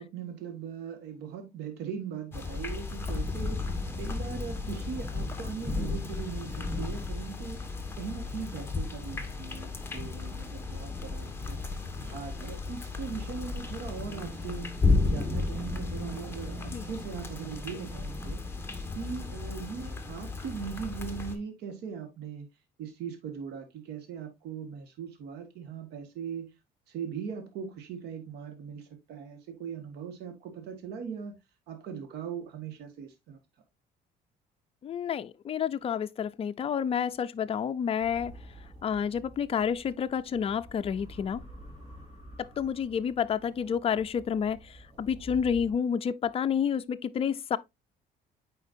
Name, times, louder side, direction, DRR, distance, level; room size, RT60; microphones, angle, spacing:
voice 1, 0.0-7.6 8.0-11.6 12.0-14.7 15.0-18.4 18.9-22.5 22.8-26.5 26.9-31.3 31.7-33.4, right 7 dB, 80° right, 1.6 m, -40 dB
sound 1, 2.3-21.4, left 3 dB, 15° left, 1.3 m, -33 dB
voice 2, 34.8-38.3 38.8-41.4 42.6-44.6 45.0-47.6, left 7 dB, 35° left, 0.5 m, -29 dB
sound 2, 38.0-45.7, equal, 25° right, 3.8 m, -49 dB
9.1 x 4.5 x 2.6 m
cardioid pair, 110°, 17 cm